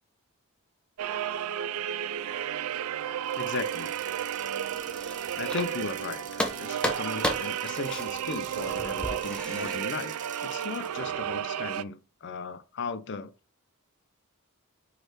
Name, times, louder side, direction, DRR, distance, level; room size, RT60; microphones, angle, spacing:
sound 1, 1.0-11.8, right 9 dB, 70° right, 0.4 m, -33 dB
sound 2, 3.2-11.1, right 8 dB, 35° right, 0.9 m, -46 dB
voice 1, 3.4-3.9 5.4-10.1 10.4-13.3, left 4 dB, 55° left, 0.5 m, -36 dB
sound 3, 4.7-6.0 6.4-9.8, equal, 5° left, 0.9 m, -34 dB
5.3 x 4.1 x 4.4 m
head